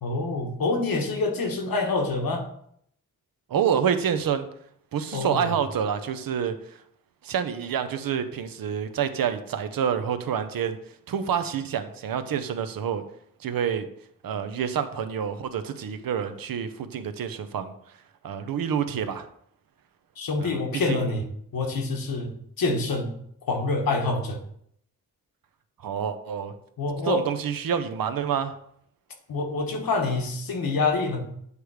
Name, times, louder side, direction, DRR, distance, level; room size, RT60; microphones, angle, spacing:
voice 1, 0.0-2.4 5.1-5.6 20.2-21.2 21.5-24.4 26.8-27.2 29.3-31.3, left 3 dB, 85° left, 2 dB, 1.3 m, -26 dB
voice 2, 3.5-4.5 4.9-6.8 7.2-10.8 11.1-13.0 13.4-13.9 14.2-17.7 18.2-19.3 20.4-20.6 20.9-21.1 25.8-26.5 27.1-28.5, right 8 dB, 85° right, 10 dB, 0.7 m, -28 dB
8.2 x 3.4 x 4.7 m, 0.69 s
cardioid pair, 65°, 34 cm